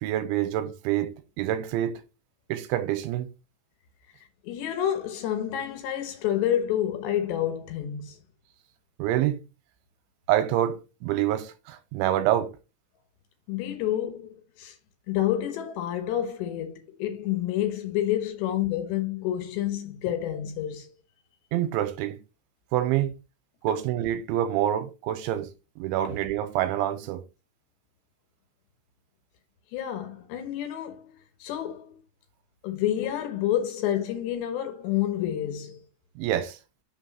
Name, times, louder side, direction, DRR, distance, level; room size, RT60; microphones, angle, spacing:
voice 1, 0.0-2.0 2.5-3.3 9.0-9.4 10.3-12.5 21.5-22.2 22.7-23.1 23.6-25.5 25.8-27.2 36.2-36.6, right 12 dB, 85° right, 3.0 m, -26 dB
voice 2, 4.4-8.2 13.5-14.8 15.1-20.9 26.0-26.2 29.7-31.0 31.4-32.0 32.6-35.8, left 11 dB, 75° left, 3.0 m, -29 dB
6.6 x 6.1 x 4.0 m
omnidirectional pair, 5.6 m